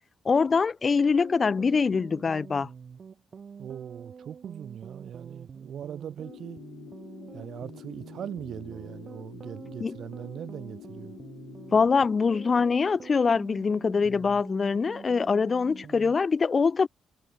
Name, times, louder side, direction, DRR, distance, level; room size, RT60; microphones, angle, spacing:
voice 1, 0.3-2.7 9.8-9.9 11.7-16.9, left 5 dB, 35° left, 0.5 m, -24 dB
sound 1, 0.5-16.2, right 6 dB, 45° right, 3.2 m, -47 dB
voice 2, 3.6-6.6 7.3-11.1, right 9 dB, 65° right, 2.1 m, -40 dB
sound 2, 6.2-12.8, left 14 dB, 85° left, 5.9 m, -47 dB
cardioid pair, 90°, 0 cm